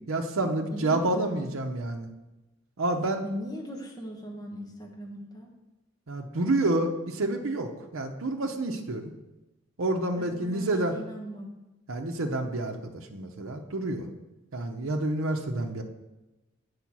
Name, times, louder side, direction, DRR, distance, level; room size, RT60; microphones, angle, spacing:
voice 1, 0.1-2.1 2.8-3.2 6.1-9.0 9.8-11.0 11.9-14.1 14.5-15.8, right 2 dB, 80° right, 3 dB, 0.7 m, -29 dB
voice 2, 0.7-1.4 3.2-5.5 10.2-11.5, equal, 20° left, -1 dB, 1.2 m, -39 dB
8.5 x 4.9 x 6.1 m, 1.0 s
head